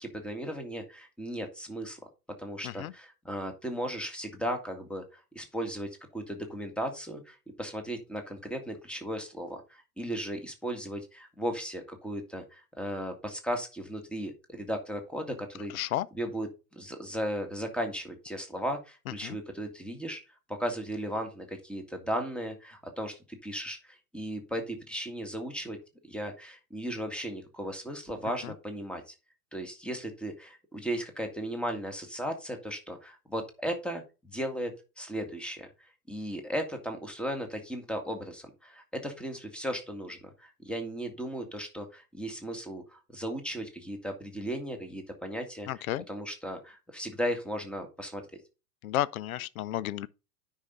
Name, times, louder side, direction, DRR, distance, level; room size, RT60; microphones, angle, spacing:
voice 1, 0.0-2.0 2.4-15.7 16.1-20.2 20.5-25.8 26.0-29.2 29.5-34.7 35.0-45.7 46.1-48.2, equal, ahead, 1.9 m, -36 dB
voice 2, 15.7-16.1 19.2-19.4 28.4-28.5 45.7-46.0 48.8-50.1, left 13 dB, 65° left, 0.7 m, -32 dB
9.5 x 5.7 x 3.8 m
figure-of-eight pair, 95°, 46 cm